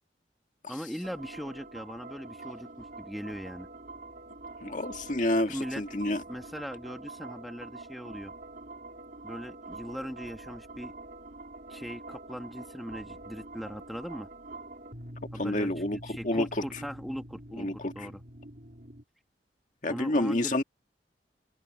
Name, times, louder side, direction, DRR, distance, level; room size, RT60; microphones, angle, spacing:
voice 1, 0.7-3.7 5.5-5.8 6.3-8.3 9.2-10.9 11.7-14.3 15.3-15.7 16.1-18.2 19.8-20.6, equal, ahead, 2.2 m, -39 dB
sound 1, 1.0-19.0, right 2 dB, 50° right, 4.7 m, -46 dB
voice 2, 4.6-6.2 15.4-16.6 17.6-18.1 19.8-20.6, left 1 dB, 45° left, 2.0 m, -29 dB
head